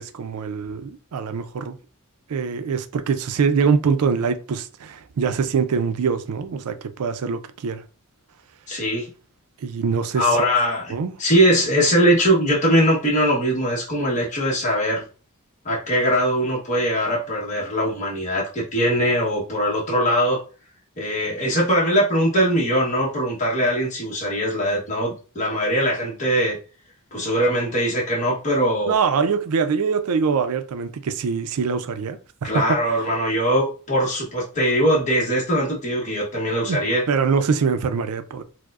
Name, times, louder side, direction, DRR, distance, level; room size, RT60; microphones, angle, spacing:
voice 1, 0.0-1.8 2.3-7.8 9.6-10.2 10.9-11.1 28.9-32.6 36.7-36.8 37.1-38.4, right 5 dB, 75° right, 0.4 m, -23 dB
voice 2, 8.7-9.1 10.1-10.9 11.2-15.0 15.6-20.4 21.0-26.6 27.1-29.0 32.4-37.1, equal, 35° left, 1.0 m, -21 dB
4.6 x 2.1 x 2.3 m
head